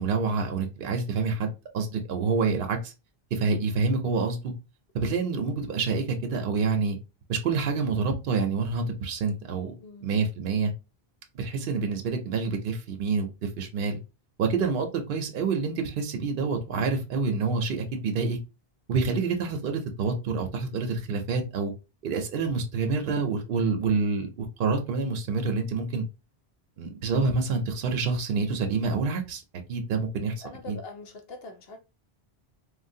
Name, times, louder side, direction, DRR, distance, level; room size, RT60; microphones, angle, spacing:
voice 1, 0.0-2.9 3.3-4.5 4.9-7.0 7.3-9.7 10.0-10.7 11.3-14.0 14.4-18.4 18.9-21.7 22.0-26.0 26.8-29.4 29.7-30.4 30.7-30.8, right 4 dB, 65° right, 0.7 m, -27 dB
voice 2, 9.8-10.2 30.4-31.8, left 3 dB, 75° left, 0.8 m, -43 dB
3.2 x 2.2 x 2.6 m
omnidirectional pair, 1.1 m